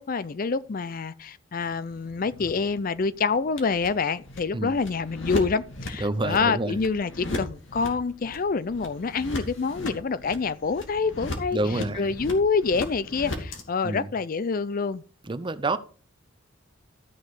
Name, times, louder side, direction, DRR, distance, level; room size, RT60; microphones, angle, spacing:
voice 1, 0.0-11.6 12.0-15.0, left 4 dB, 45° left, 0.5 m, -27 dB
sound 1, 1.6-13.6, left 2 dB, 65° left, 2.5 m, -37 dB
voice 2, 6.0-6.8 11.5-12.1 13.8-14.1 15.2-15.8, right 2 dB, 25° right, 0.6 m, -28 dB
13.5 x 6.3 x 4.9 m
head